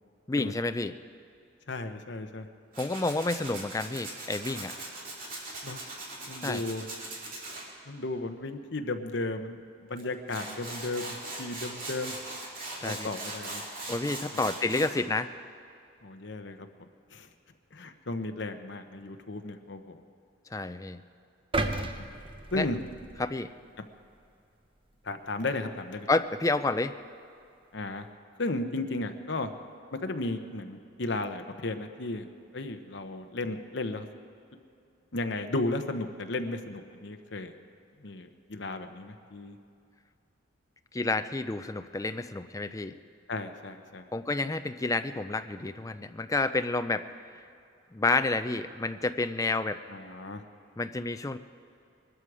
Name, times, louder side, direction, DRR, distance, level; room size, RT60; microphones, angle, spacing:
voice 1, 0.3-1.0 2.8-4.8 6.4-6.6 12.8-13.1 13.9-15.3 20.5-21.0 22.5-22.6 23.2-23.5 26.1-27.0 40.9-43.0 44.1-47.1 47.9-49.8 50.8-51.4, left 3 dB, 15° left, 10 dB, 0.4 m, -29 dB
voice 2, 1.7-2.5 5.6-5.8 6.3-6.9 7.9-12.1 12.8-13.9 14.3-14.4 16.0-16.7 17.1-17.3 17.7-20.0 21.8-21.9 22.5-22.8 25.0-26.1 27.7-28.1 28.4-29.5 29.9-32.3 32.5-34.1 35.1-37.5 38.0-39.6 43.3-44.0 49.9-50.4, left 2 dB, 60° left, 7 dB, 0.9 m, -34 dB
Tools, 2.7-7.6 10.0-10.1 10.3-14.9, right 2 dB, 45° right, 2.6 m, -40 dB
sound 1, 21.5-23.7 24.2-24.3, right 2 dB, 25° right, 0.7 m, -34 dB
22.0 x 12.5 x 4.9 m, 2.6 s
head